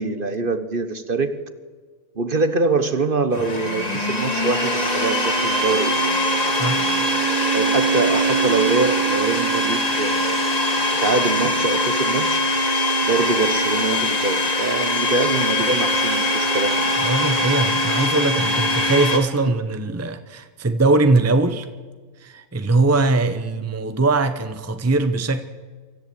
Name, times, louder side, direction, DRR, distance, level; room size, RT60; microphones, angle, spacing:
voice 1, 0.0-1.4 2.2-6.5 7.5-10.4 11.0-12.4 13.0-17.0 18.0-18.3 19.5-19.6, right 3 dB, 45° right, 11 dB, 1.3 m, -24 dB
Domestic sounds home sounds, 3.3-19.2, equal, 30° left, 2.7 m, -21 dB
voice 2, 6.5-6.8 17.0-21.7 22.2-25.4, right 3 dB, 15° right, 9 dB, 0.8 m, -21 dB
24.0 x 13.5 x 8.5 m, 1.4 s
omnidirectional pair, 1.4 m